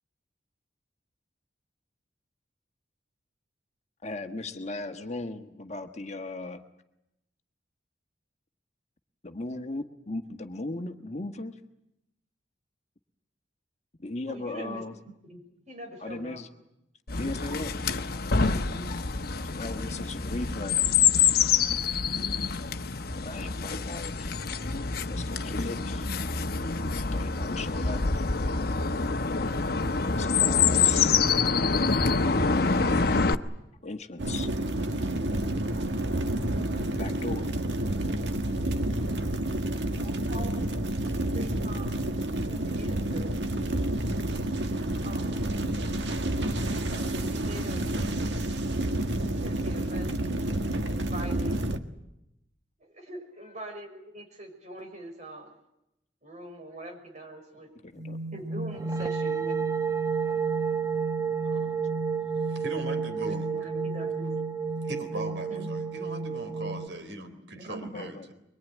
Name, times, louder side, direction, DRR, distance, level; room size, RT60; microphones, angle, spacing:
voice 1, 4.0-6.6 9.2-11.5 14.0-14.9 16.0-16.5 17.2-17.7 18.9-19.0 19.4-20.9 23.1-24.3 25.0-26.1 27.1-28.0 30.0-31.1 33.8-34.5 36.8-37.5 57.8-58.2 67.9-68.3, left 2 dB, 35° left, 6 dB, 1.4 m, -37 dB
voice 2, 14.3-14.8 15.3-16.4 17.2-17.7 18.4-18.9 40.0-43.3 45.0-45.5 46.9-47.9 49.4-50.5 50.8-51.6 52.8-55.6 56.2-57.7 58.3-59.6 61.5-61.9 62.4-62.6 63.4-64.3 65.5-65.7 67.5-68.1, right 1 dB, 40° right, 3 dB, 5.9 m, -43 dB
Chirp tweet, 17.1-33.3, left 5 dB, 55° left, 1.0 m, -26 dB
sound 1, 34.2-51.8, right 1 dB, 70° right, 1.7 m, -29 dB
sound 2, 58.0-66.9, right 5 dB, 20° right, 1.0 m, -30 dB
voice 3, 62.4-63.7 64.8-68.3, right 1 dB, 85° right, 6 dB, 3.9 m, -39 dB
23.5 x 23.0 x 9.4 m, 0.85 s
head